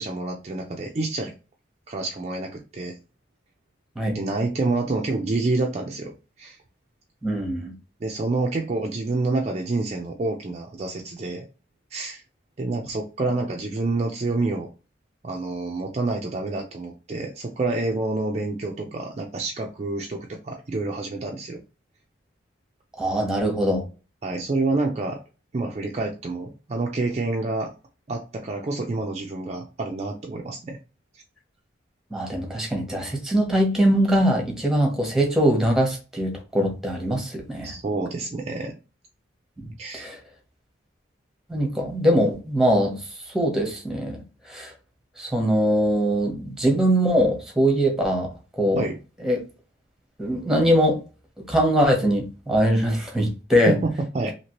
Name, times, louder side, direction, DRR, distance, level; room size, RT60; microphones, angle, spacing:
voice 1, 0.0-1.3 1.9-3.0 4.1-6.1 6.4-6.6 8.0-11.5 11.9-12.2 12.6-14.7 15.2-21.6 24.2-25.2 25.5-27.7 28.1-30.8 37.6-38.8 39.8-40.1 48.8-49.0 53.7-54.3, right 3 dB, 35° right, 1 dB, 0.4 m, -28 dB
voice 2, 7.2-7.7 23.0-23.8 32.1-37.7 39.9-40.2 41.5-43.0 43.3-44.2 44.5-44.7 45.2-48.3 48.6-48.9 49.2-49.4 50.2-51.0 51.4-53.8, equal, ahead, 1 dB, 0.8 m, -22 dB
2.9 x 2.8 x 2.9 m, 0.32 s
head